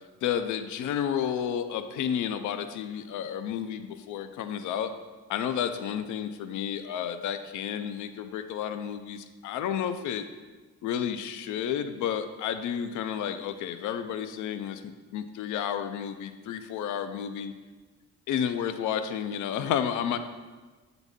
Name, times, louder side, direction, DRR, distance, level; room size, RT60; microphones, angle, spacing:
voice 1, 0.2-4.9 5.3-10.3 10.8-17.5 18.3-20.2, left 9 dB, 80° left, 9 dB, 0.5 m, -31 dB
8.1 x 3.9 x 3.5 m, 1.3 s
cardioid pair, 90°, 30 cm